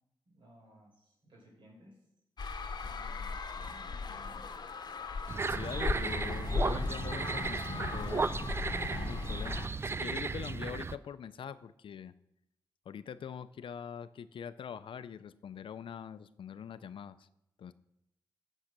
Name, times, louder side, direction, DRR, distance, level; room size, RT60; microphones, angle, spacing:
voice 1, 0.3-2.0 2.8-4.5, equal, 75° right, -2 dB, 4.4 m, -58 dB
sound 1, 2.4-9.7, left 4 dB, 55° left, 0.9 m, -38 dB
sound 2, 5.3-11.0, right 4 dB, 30° right, 0.4 m, -35 dB
voice 2, 5.5-12.1 12.9-17.3 17.6-17.7, left 7 dB, 85° left, 14 dB, 0.5 m, -44 dB
15.0 x 6.4 x 6.0 m, 0.83 s
wide cardioid pair, 135°, 9 cm